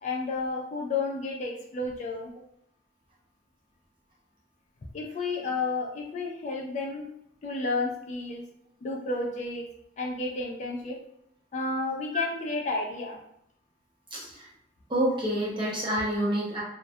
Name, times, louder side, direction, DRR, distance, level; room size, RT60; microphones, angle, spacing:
voice 1, 0.0-2.3 4.9-7.1 7.4-8.4 8.8-9.6 10.0-11.0 11.5-13.2, left 3 dB, 40° left, -1 dB, 0.3 m, -31 dB
voice 2, 14.1-14.5 14.9-16.6, equal, 25° right, -5 dB, 0.7 m, -28 dB
2.2 x 2.1 x 2.6 m, 0.75 s
head